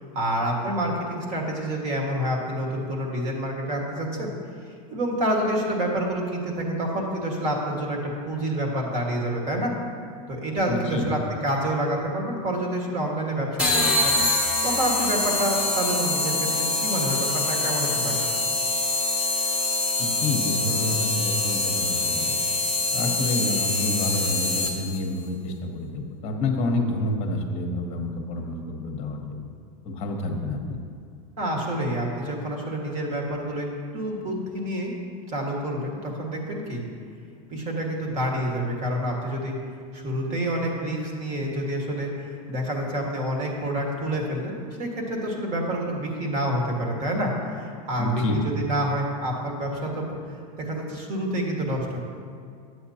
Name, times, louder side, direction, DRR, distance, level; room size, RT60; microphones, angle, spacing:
voice 1, 0.1-4.3 4.9-9.7 10.3-14.1 14.6-18.2 31.4-33.7 33.9-34.9 35.3-36.8 37.5-39.6 39.9-50.1 50.6-52.0, right 1 dB, 35° right, 0 dB, 1.6 m, -28 dB
voice 2, 10.7-11.1 20.0-22.4 22.9-29.2 29.8-30.8 47.9-48.4, left 2 dB, 35° left, 3 dB, 1.0 m, -28 dB
sound 1, 13.6-25.0, left 2 dB, 5° right, 1.0 m, -25 dB
10.5 x 7.9 x 2.8 m, 2.2 s
supercardioid pair, 145°, 19 cm